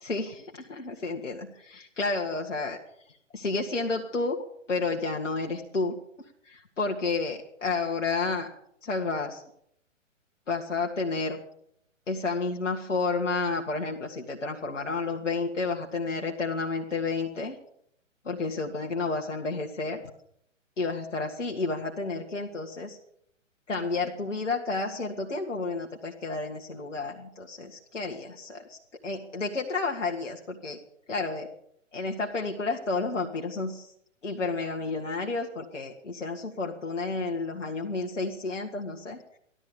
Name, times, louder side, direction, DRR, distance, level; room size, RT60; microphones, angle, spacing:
voice 1, 0.0-2.8 3.3-4.4 4.7-5.9 6.5-8.5 8.8-9.4 10.5-11.4 12.1-17.6 18.2-20.0 20.8-23.0 23.7-28.8 29.0-30.8 31.1-31.5 31.9-33.9 34.2-39.4, left 3 dB, 65° left, 1 dB, 1.8 m, -31 dB
15.5 x 12.5 x 6.9 m, 0.70 s
figure-of-eight pair, 130°, 39 cm